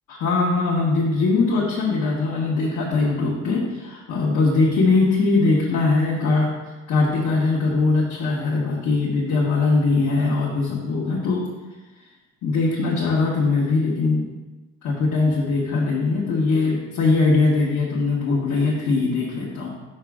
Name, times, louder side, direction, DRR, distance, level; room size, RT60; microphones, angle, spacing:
voice 1, 0.1-6.5 6.9-11.4 12.4-14.3 14.8-19.7, left 3 dB, 75° left, -5 dB, 1.2 m, -21 dB
5.6 x 4.9 x 3.6 m, 1.2 s
cardioid pair, 90°, 30 cm